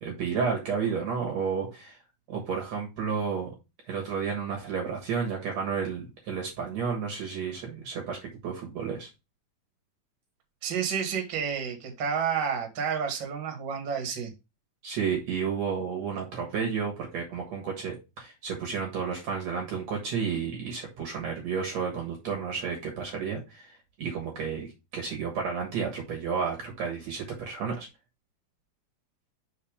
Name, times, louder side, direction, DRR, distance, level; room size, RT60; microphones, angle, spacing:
voice 1, 0.0-2.0 2.3-3.5 3.9-9.1 14.8-27.9, right 6 dB, 60° right, 2.4 m, -32 dB
voice 2, 10.6-14.3, right 7 dB, 40° right, 2.0 m, -30 dB
5.8 x 4.1 x 5.0 m
omnidirectional pair, 4.1 m